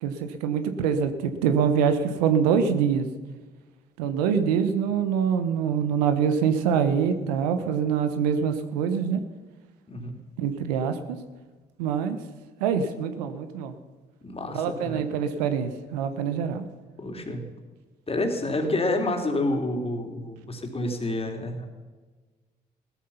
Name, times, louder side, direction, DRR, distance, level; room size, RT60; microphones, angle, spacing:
voice 1, 0.0-3.1 4.0-9.2 10.4-11.2 11.8-12.2 12.6-13.7 14.5-16.7, right 7 dB, 90° right, 9 dB, 1.0 m, -25 dB
voice 2, 14.2-15.3 17.0-17.5 18.1-21.7, left 2 dB, 30° left, 3 dB, 3.5 m, -29 dB
16.5 x 13.5 x 5.7 m, 1.3 s
hypercardioid pair, 55°, 20 cm